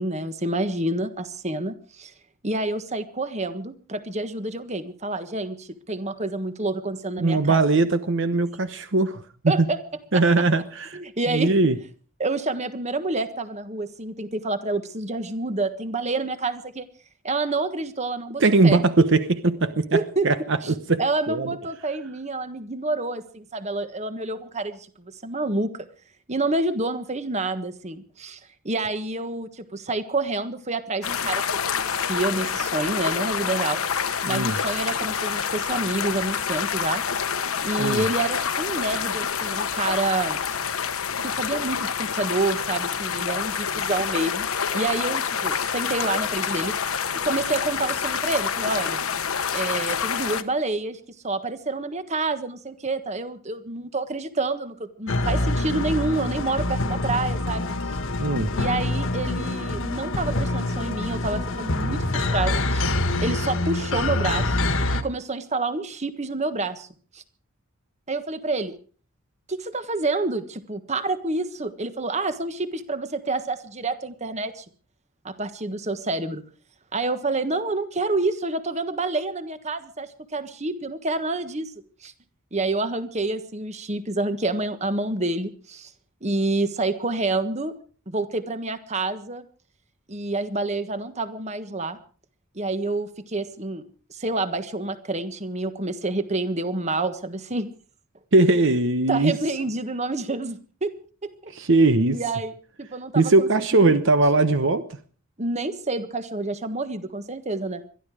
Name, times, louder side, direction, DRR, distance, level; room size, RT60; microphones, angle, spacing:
voice 1, 0.0-2.1 2.4-7.6 9.5-9.8 10.1-10.4 10.9-11.5 12.2-16.8 17.2-18.8 19.9-20.3 20.6-20.7 21.0-24.9 25.2-25.9 26.3-28.4 28.6-33.8 34.3-37.0 37.6-40.5 41.2-44.5 44.7-46.7 47.2-49.0 49.5-51.0 51.2-57.7 58.5-62.9 63.2-64.6 64.9-66.9 67.1-67.2 68.1-68.8 69.5-74.6 75.2-76.4 76.9-81.7 82.0-82.1 82.5-85.9 86.2-87.7 88.1-89.4 90.1-92.0 92.5-93.8 94.1-97.7 99.1-100.9 101.2-101.5 102.1-102.5 102.8-103.5 105.4-107.9, right 2 dB, 30° right, 1.4 m, -28 dB
voice 2, 7.2-9.7 10.1-11.0 11.3-11.8 18.4-20.0 20.2-21.0 21.3-21.5 34.2-34.6 37.8-38.1 58.2-58.5 98.3-99.3 101.5-102.2 103.1-105.0, right 3 dB, 60° right, 1.0 m, -20 dB
sound 1, 31.0-50.4, left 7 dB, 85° left, 1.2 m, -27 dB
sound 2, 55.1-65.0, left 2 dB, 65° left, 1.6 m, -25 dB
22.0 x 13.5 x 4.9 m
head